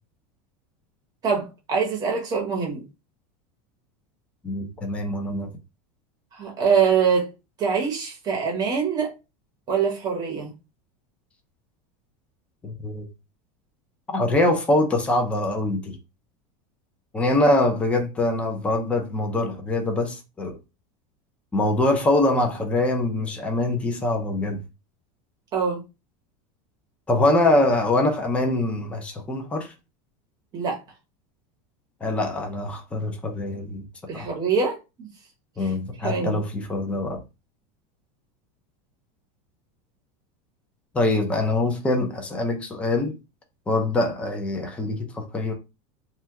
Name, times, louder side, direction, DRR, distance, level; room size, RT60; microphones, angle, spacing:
voice 1, 1.2-2.8 6.3-7.3 7.6-9.1 9.7-10.5 25.5-25.8 30.5-30.8 34.1-35.1 35.6-35.7 36.0-36.4, right 6 dB, 20° right, 0.7 m, -24 dB
voice 2, 4.4-5.5 12.6-13.1 14.1-16.0 17.1-20.6 21.5-24.6 27.1-29.7 32.0-33.9 34.1-34.3 35.6-37.2 40.9-43.1 43.7-45.5, left 2 dB, 5° left, 0.4 m, -24 dB
2.8 x 2.2 x 3.3 m
supercardioid pair, 170°, 18 cm